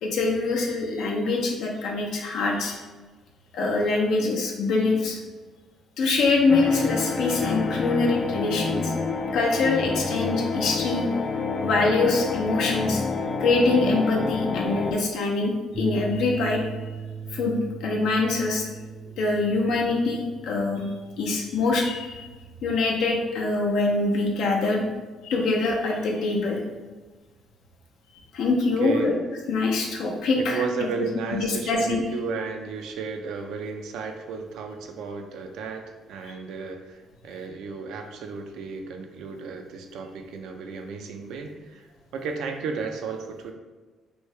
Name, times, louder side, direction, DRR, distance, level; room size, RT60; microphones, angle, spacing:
voice 1, 0.0-2.8 3.5-5.2 6.0-8.9 9.3-11.1 11.6-13.0 13.4-16.7 17.3-18.7 19.2-20.8 21.2-22.3 22.6-24.8 25.2-26.6 28.3-29.1 29.5-30.6 31.3-32.0, left 3 dB, 80° left, 0 dB, 0.6 m, -24 dB
sound 1, 6.5-14.9, left 4 dB, 45° left, 0.3 m, -28 dB
sound 2, 15.7-24.2, right 5 dB, 5° right, 0.6 m, -39 dB
voice 2, 30.4-43.5, right 4 dB, 80° right, 4 dB, 0.4 m, -33 dB
3.1 x 2.7 x 3.2 m, 1.3 s
cardioid pair, 90°, 0 cm